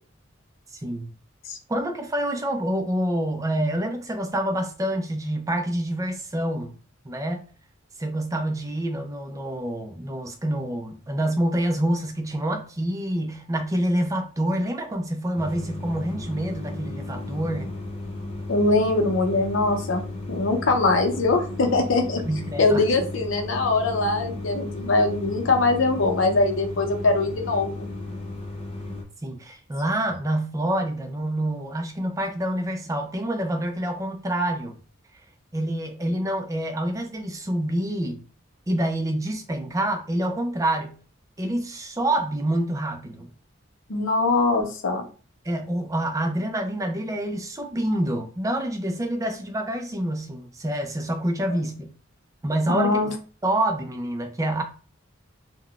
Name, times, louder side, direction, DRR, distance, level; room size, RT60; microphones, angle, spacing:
voice 1, 0.7-1.1 1.7-6.7 7.0-7.4 8.0-17.7 22.2-22.8 29.2-34.8 35.5-38.2 38.7-40.9 41.4-43.3 45.4-51.9 52.4-53.0 53.4-54.6, right 1 dB, 15° right, 0.4 m, -27 dB
sound 1, 15.3-29.0, left 2 dB, 30° left, 0.7 m, -35 dB
voice 2, 18.5-20.0 20.3-22.2 22.6-27.9 43.9-45.1 51.5-51.6 52.7-53.1, left 3 dB, 70° left, 0.6 m, -22 dB
3.6 x 2.2 x 2.3 m
head